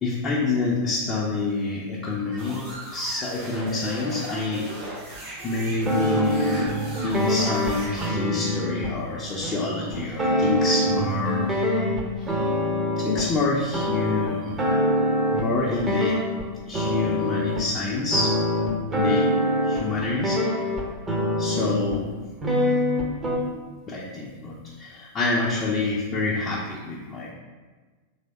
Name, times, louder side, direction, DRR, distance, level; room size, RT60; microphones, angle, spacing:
voice 1, 0.0-4.7 5.4-11.6 12.2-12.3 13.0-14.6 15.3-16.2 16.7-18.4 18.9-19.3 19.6-20.4 21.4-22.1 23.9-27.3, left 3 dB, 25° left, -5 dB, 0.6 m, -27 dB
sound 1, 2.3-8.1, right 1 dB, 65° right, 1.4 m, -37 dB
sound 2, 5.8-13.3 13.7-16.5 16.7-17.7 18.1-22.0 22.4-23.4, equal, 20° right, 0.7 m, -25 dB
3.4 x 3.3 x 4.0 m, 1.3 s
figure-of-eight pair, 90°, 0 cm